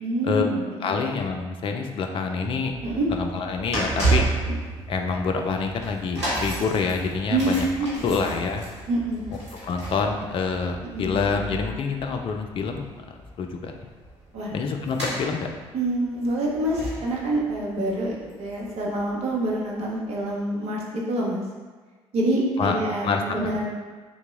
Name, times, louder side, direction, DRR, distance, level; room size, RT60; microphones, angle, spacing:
voice 1, 0.0-0.9 2.8-3.1 7.3-7.5 7.8-8.0 8.9-9.3 10.9-11.1 14.3-14.5 15.7-20.8 21.1-21.4 22.1-23.7, right 1 dB, 45° right, -3 dB, 0.7 m, -26 dB
voice 2, 0.8-2.7 3.1-4.3 4.9-7.7 8.0-8.6 9.6-12.8 13.4-13.8 14.5-15.5 22.6-22.8 23.0-23.5, left 5 dB, 40° left, 4 dB, 0.4 m, -26 dB
sound 1, 2.7-19.0 19.2-19.5 20.3-20.4, right 2 dB, 85° right, 0.8 m, -32 dB
2.9 x 2.1 x 3.4 m, 1.4 s
figure-of-eight pair, 50°, 14 cm